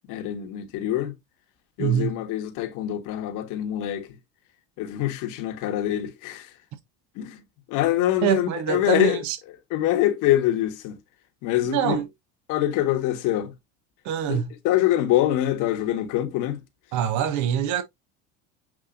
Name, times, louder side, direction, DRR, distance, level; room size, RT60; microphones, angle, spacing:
voice 1, 0.1-1.1 1.8-4.1 4.8-6.5 7.2-7.4 7.7-9.2 9.7-11.0 11.4-12.0 12.5-13.5 14.3-14.4 14.6-16.6, left 13 dB, 65° left, 1.4 m, -24 dB
voice 2, 1.8-2.2 8.2-9.4 11.6-12.1 14.0-14.5 16.9-17.8, right 10 dB, 60° right, 0.9 m, -24 dB
7.4 x 2.8 x 2.5 m
supercardioid pair, 95°, 34 cm